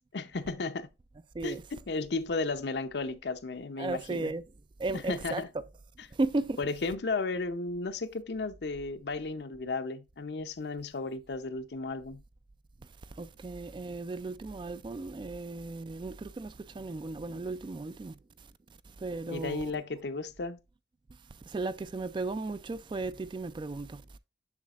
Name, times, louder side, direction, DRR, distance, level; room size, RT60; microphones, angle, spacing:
voice 1, 0.1-0.9 1.4-1.6 1.9-4.3 4.9-5.5 6.6-12.2 19.3-20.6, left 3 dB, 65° left, 0.6 m, -34 dB
voice 2, 3.8-4.4 4.8-5.7 6.1-6.6 13.2-18.1 19.0-19.8 21.5-24.0, right 3 dB, 25° right, 0.3 m, -35 dB
7.1 x 6.4 x 2.4 m
head